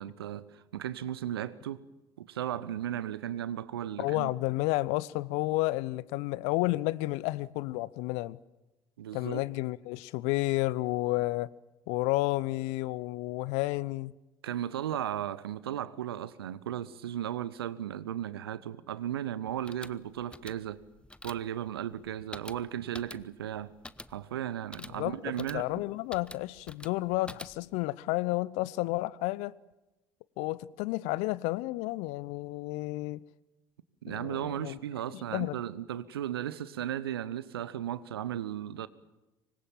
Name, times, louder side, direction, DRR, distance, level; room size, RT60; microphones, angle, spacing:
voice 1, 0.0-1.8 2.2-4.3 9.0-9.4 14.4-20.8 21.2-23.7 24.1-25.7 34.0-38.9, right 11 dB, 80° right, 1.0 m, -35 dB
voice 2, 4.0-8.4 9.1-11.5 11.9-14.1 24.8-29.5 30.4-33.2 34.1-34.8 35.1-35.6, left 20 dB, 65° left, 0.8 m, -31 dB
sound 1, 19.5-27.8, left 2 dB, 10° left, 0.9 m, -48 dB
25.0 x 20.5 x 7.3 m
figure-of-eight pair, 55°, 13 cm